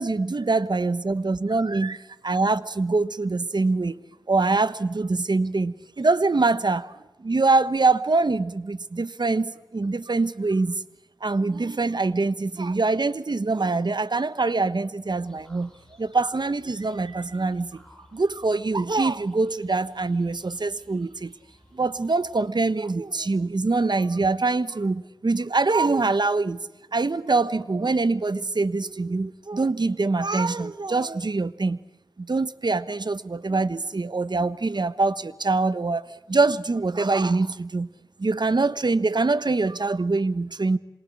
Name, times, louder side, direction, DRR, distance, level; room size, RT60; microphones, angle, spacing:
voice 1, 0.0-4.0 4.3-6.9 7.2-10.8 11.2-15.7 16.0-17.8 18.1-21.3 21.7-26.6 26.9-31.8 32.2-36.0 36.3-37.9 38.2-40.8, right 3 dB, 65° right, 1.3 m, -24 dB
sound 1, 15.1-22.5, left 1 dB, 10° left, 7.7 m, -57 dB
27.0 x 23.0 x 8.7 m
wide cardioid pair, 50°, 8 cm